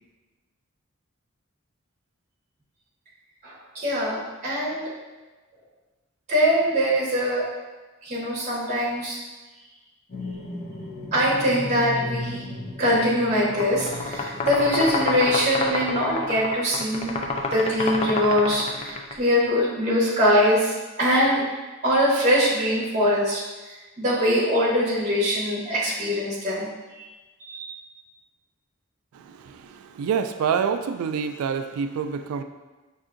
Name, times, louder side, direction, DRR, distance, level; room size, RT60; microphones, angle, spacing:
voice 1, 3.4-4.9 6.3-7.4 8.0-9.2 11.1-12.4 12.8-17.1 17.5-20.7 21.0-21.4 21.8-23.4 24.0-26.7 27.0-27.1 27.5-27.7, equal, 30° right, -6 dB, 0.9 m, -22 dB
sound 1, 10.1-16.2 17.0-17.4, left 2 dB, 45° left, 0.8 m, -37 dB
sound 2, 13.4-19.2, left 3 dB, 30° left, 0.3 m, -28 dB
voice 2, 29.1-32.4, right 6 dB, 85° right, 11 dB, 0.3 m, -27 dB
5.5 x 2.7 x 2.5 m, 1.2 s
head